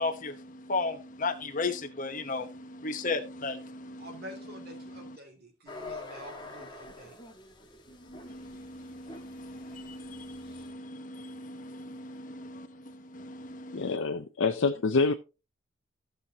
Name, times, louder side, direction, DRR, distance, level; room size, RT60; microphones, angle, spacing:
voice 1, 0.0-5.2 7.9-14.0, left 3 dB, 40° left, 1.1 m, -36 dB
voice 2, 4.0-7.2, equal, 50° right, 2.6 m, -47 dB
sound 1, 5.7-10.7, left 2 dB, 20° left, 1.6 m, -47 dB
voice 3, 13.7-15.1, left 4 dB, 70° left, 0.6 m, -26 dB
14.5 x 6.3 x 2.9 m
head